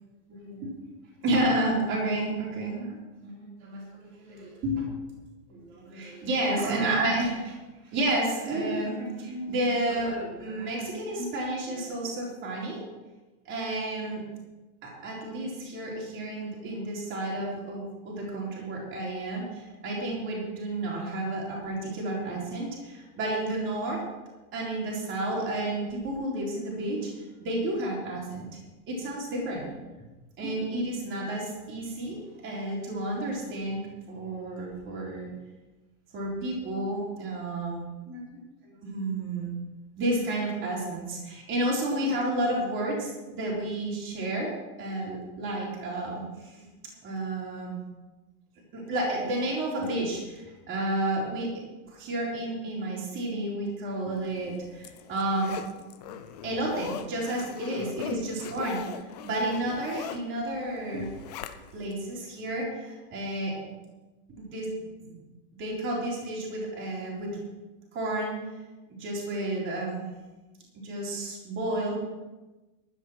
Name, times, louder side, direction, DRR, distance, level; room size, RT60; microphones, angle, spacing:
voice 1, 0.3-3.0 3.2-4.9 5.5-7.6 7.9-12.8 13.5-14.2 14.8-24.0 24.5-27.1 27.4-28.5 28.9-29.7 30.4-35.3 36.1-39.5 40.0-44.5 44.8-46.7 47.0-47.8 48.7-51.5 51.9-55.6 56.4-58.8 59.2-61.1 61.7-63.5 64.5-64.7 65.0-65.1 65.6-67.3 67.9-68.3 69.0-70.1 70.8-72.0, right 1 dB, 25° right, -3 dB, 3.9 m, -31 dB
Zipper (clothing), 54.3-61.9 62.4-62.5, left 9 dB, 30° left, 0.4 m, -41 dB
12.0 x 10.0 x 6.3 m, 1.1 s
supercardioid pair, 170°, 47 cm